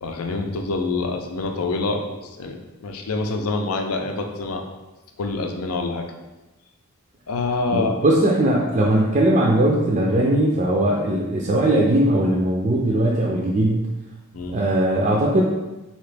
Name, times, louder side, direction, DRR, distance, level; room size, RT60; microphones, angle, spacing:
voice 1, 0.0-4.6 5.2-6.1 7.3-8.0 14.3-14.6, left 3 dB, 70° left, 3 dB, 0.5 m, -26 dB
voice 2, 7.7-13.9 14.5-15.4, right 1 dB, 35° right, -3 dB, 0.4 m, -19 dB
4.1 x 2.9 x 3.3 m, 1.1 s
head